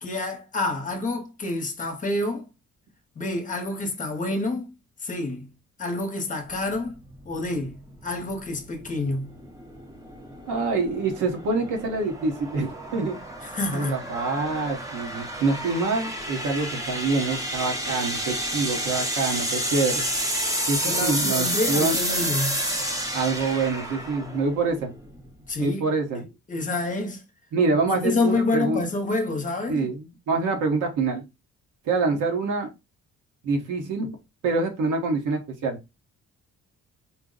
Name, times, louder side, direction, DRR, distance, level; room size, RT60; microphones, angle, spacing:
voice 1, 0.0-2.5 3.2-4.7 5.0-5.5 5.8-6.9 7.2-7.8 8.0-9.3 13.4-14.0 20.8-22.8 25.5-25.8 26.1-27.2 27.9-29.9, left 2 dB, 25° left, 0.9 m, -28 dB
sound 1, 6.5-25.6, right 1 dB, 10° right, 0.8 m, -30 dB
voice 2, 10.5-13.2 13.7-20.0 20.7-22.0 23.1-24.9 25.6-26.2 27.5-28.8 29.7-31.2 31.8-32.7 33.4-34.1 34.4-35.8, right 3 dB, 85° right, 1.3 m, -26 dB
4.5 x 2.1 x 3.9 m
cardioid pair, 145°, 30 cm